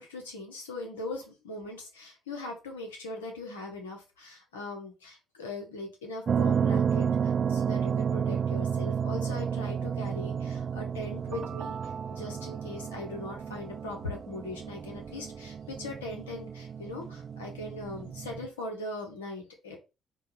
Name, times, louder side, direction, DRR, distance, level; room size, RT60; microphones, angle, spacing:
voice 1, 0.0-11.8 12.1-19.8, left 2 dB, 85° left, 1 dB, 1.0 m, -40 dB
sound 1, 6.3-18.5, right 7 dB, 45° right, 0.3 m, -31 dB
4.6 x 2.4 x 4.6 m, 0.27 s
hypercardioid pair, 45°, 0 cm